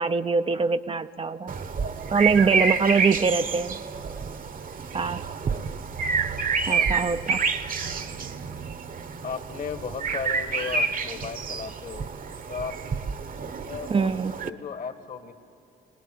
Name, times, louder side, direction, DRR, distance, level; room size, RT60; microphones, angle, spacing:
voice 1, 0.0-1.5 2.1-3.7 4.9-5.3 6.7-7.4 13.9-14.3, right 5 dB, 30° right, 9 dB, 0.5 m, -23 dB
sound 1, 1.5-14.5, right 5 dB, 45° right, 1.0 m, -29 dB
voice 2, 9.2-12.1 12.5-12.8 13.4-14.1 14.4-15.3, left 6 dB, 45° left, 9 dB, 1.4 m, -35 dB
22.0 x 19.5 x 9.3 m, 2.7 s
cardioid pair, 90°, 20 cm